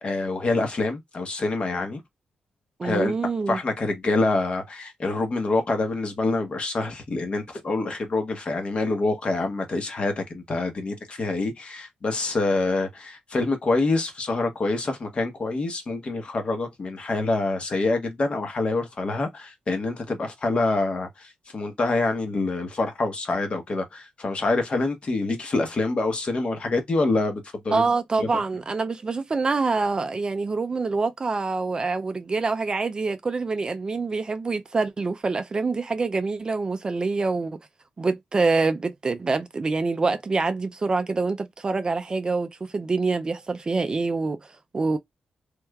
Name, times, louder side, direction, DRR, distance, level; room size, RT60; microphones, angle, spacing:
voice 1, 0.0-2.0 2.8-3.2 3.5-27.8 28.2-28.3, left 3 dB, 40° left, 1.0 m, -26 dB
voice 2, 2.8-3.6 27.7-37.6 38.0-45.0, right 3 dB, 30° right, 0.4 m, -26 dB
3.2 x 3.1 x 2.3 m
cardioid pair, 105°, 3 cm